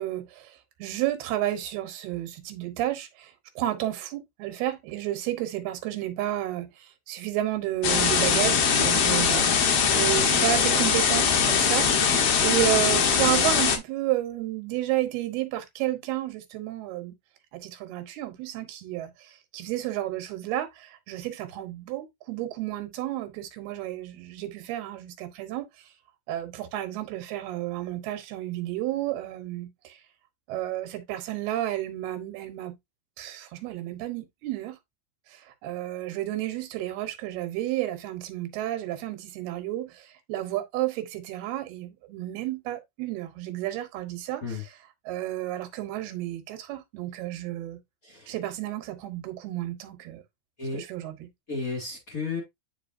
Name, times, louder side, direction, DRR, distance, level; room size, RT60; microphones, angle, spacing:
voice 1, 0.0-17.1 17.5-25.7 26.3-30.0 30.5-32.7 33.2-34.8 35.3-44.8 45.1-47.8 48.3-50.2 50.7-51.3, right 14 dB, 90° right, 3.1 m, -31 dB
sound 1, 7.8-13.8, left 6 dB, 65° left, 1.5 m, -22 dB
voice 2, 48.0-48.3 50.6-50.8 51.5-52.4, left 4 dB, 30° left, 2.1 m, -33 dB
8.9 x 5.0 x 2.6 m
omnidirectional pair, 4.4 m